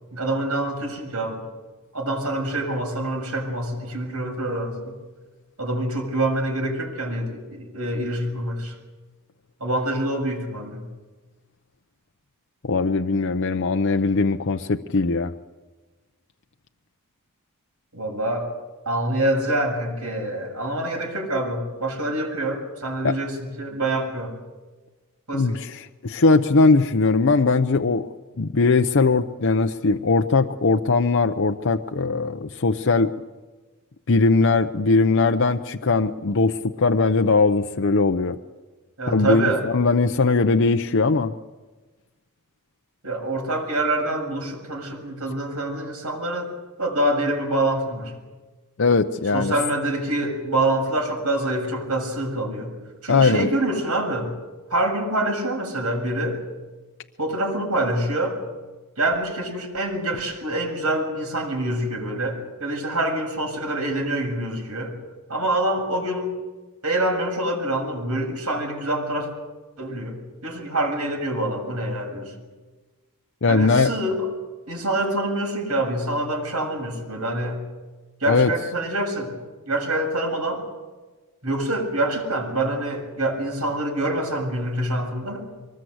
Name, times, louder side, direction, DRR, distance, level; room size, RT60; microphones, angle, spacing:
voice 1, 0.1-1.4 1.9-5.0 5.6-8.7 9.6-10.8 17.9-18.5 18.9-24.3 25.3-25.6 39.0-39.6 43.0-46.5 46.8-48.1 49.3-52.7 53.0-54.3 54.7-56.4 57.2-58.4 59.0-64.9 65.3-66.3 66.8-69.3 69.8-70.2 70.4-72.3 73.5-74.3 74.7-77.6 78.2-79.3 79.7-80.6 81.4-85.4, right 1 dB, 80° right, 2 dB, 6.9 m, -26 dB
voice 2, 12.6-15.3 23.0-23.2 25.3-28.1 28.4-33.1 34.1-38.4 39.1-41.4 48.8-49.5 53.1-53.5 73.4-73.9 78.3-78.5, left 3 dB, 60° left, 6 dB, 0.7 m, -20 dB
24.5 x 20.0 x 8.0 m, 1.3 s
head